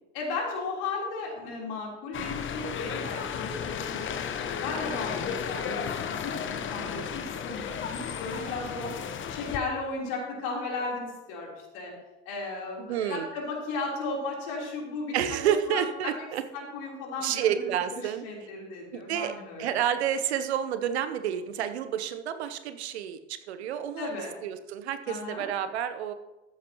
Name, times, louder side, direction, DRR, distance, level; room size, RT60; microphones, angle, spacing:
voice 1, 0.1-4.0 4.3-8.9 9.3-11.9 12.3-16.2 16.5-19.8 24.0-24.3 25.1-25.5, left 3 dB, 60° left, -2 dB, 3.7 m, -35 dB
sound 1, 2.1-9.6, left 7 dB, 35° left, 1.0 m, -34 dB
voice 2, 12.8-13.3 15.1-16.4 17.2-18.2 18.9-19.3 19.6-24.1 24.4-26.1, right 9 dB, 75° right, 11 dB, 0.9 m, -29 dB
13.5 x 8.6 x 3.0 m, 1.0 s
figure-of-eight pair, 65°, 33 cm